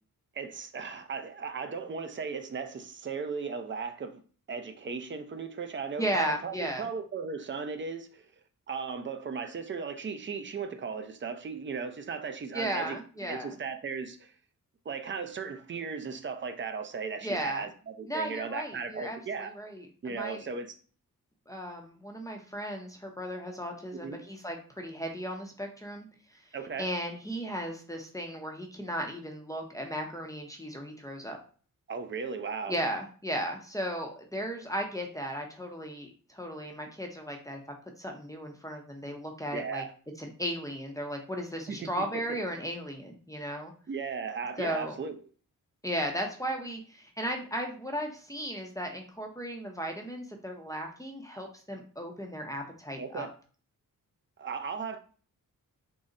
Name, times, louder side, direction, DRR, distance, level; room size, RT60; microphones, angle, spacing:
voice 1, 0.3-4.2 4.5-8.3 8.7-14.3 14.9-19.5 20.0-20.7 24.0-24.2 26.5-26.9 31.9-32.8 39.5-39.9 41.7-42.4 43.9-45.2 53.0-53.3 54.4-55.0, right 5 dB, 35° right, 0.5 m, -36 dB
voice 2, 6.0-6.9 12.5-13.6 17.2-17.7 18.1-20.5 21.5-26.1 26.8-31.4 32.7-37.6 38.0-39.8 40.2-43.7 44.6-45.0 45.8-53.3, equal, 10° left, 0.6 m, -35 dB
3.8 x 2.1 x 3.8 m
cardioid pair, 90°, 34 cm